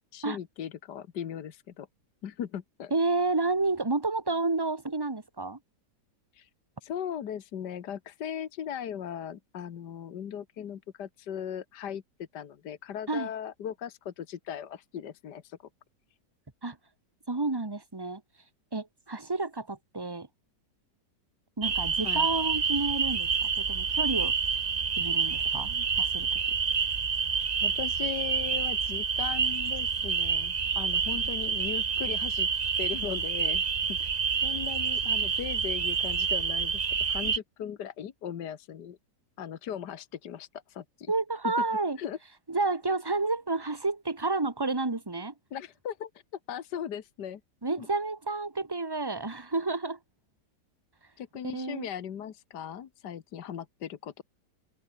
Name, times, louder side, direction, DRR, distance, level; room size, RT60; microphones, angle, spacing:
voice 1, 0.1-1.9 2.2-2.9 6.3-6.5 6.8-15.6 22.0-22.3 27.6-32.5 32.8-33.6 33.9-34.1 34.4-39.0 39.4-41.1 41.4-41.5 42.0-42.2 45.5-46.1 46.5-47.4 47.7-47.9 51.2-54.2, left 9 dB, 75° left, 1.8 m, -38 dB
voice 2, 2.9-5.6 13.1-13.3 16.6-16.8 17.3-18.2 18.7-20.3 21.6-24.3 25.0-26.3 41.1-42.0 42.5-45.3 47.6-50.0 51.5-51.9, right 3 dB, 15° right, 1.5 m, -30 dB
sound 1, 21.6-37.4, right 6 dB, 40° right, 0.5 m, -28 dB
open air
omnidirectional pair, 1.9 m